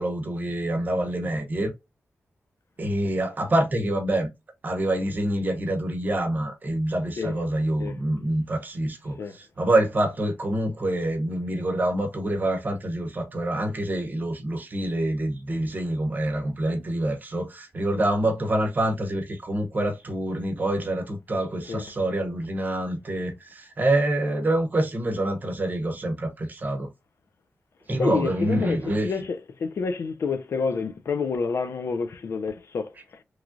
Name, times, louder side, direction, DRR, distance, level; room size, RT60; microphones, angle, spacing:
voice 1, 0.0-1.7 2.8-4.3 4.6-26.9 27.9-29.1, right 1 dB, 40° right, 0.8 m, -26 dB
voice 2, 28.0-32.9, left 5 dB, 70° left, 0.4 m, -28 dB
3.1 x 2.3 x 2.5 m
wide cardioid pair, 120°, 5 cm